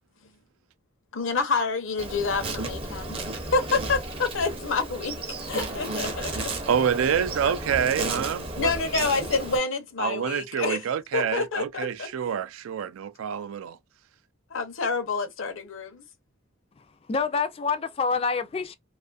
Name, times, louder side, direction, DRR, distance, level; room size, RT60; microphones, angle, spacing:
voice 1, 1.1-3.2 3.5-5.1 5.5-6.5 8.6-10.8 11.1-12.1 14.5-16.0, left 4 dB, 75° left, 0.7 m, -28 dB
Insect, 2.0-9.6, right 2 dB, 25° right, 0.5 m, -33 dB
voice 2, 6.7-8.7 10.0-13.8, right 8 dB, 85° right, 0.3 m, -27 dB
voice 3, 16.8-18.8, left 5 dB, 30° left, 0.3 m, -27 dB
2.5 x 2.4 x 2.3 m
head